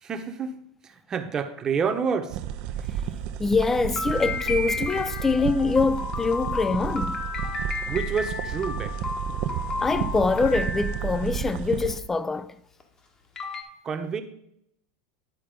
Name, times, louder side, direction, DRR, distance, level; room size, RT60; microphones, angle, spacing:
voice 1, 0.0-2.4 7.9-9.0 13.8-14.2, right 6 dB, 30° right, 1.1 m, -29 dB
sound 1, 2.3-12.0, right 10 dB, 55° right, 0.6 m, -32 dB
voice 2, 3.4-7.3 9.8-12.5, left 4 dB, 15° left, 0.5 m, -24 dB
sound 2, 4.0-11.4 12.8-12.9 13.4-13.6, left 3 dB, 30° left, 1.5 m, -32 dB
10.5 x 4.3 x 5.3 m
hypercardioid pair, 100°, 2 cm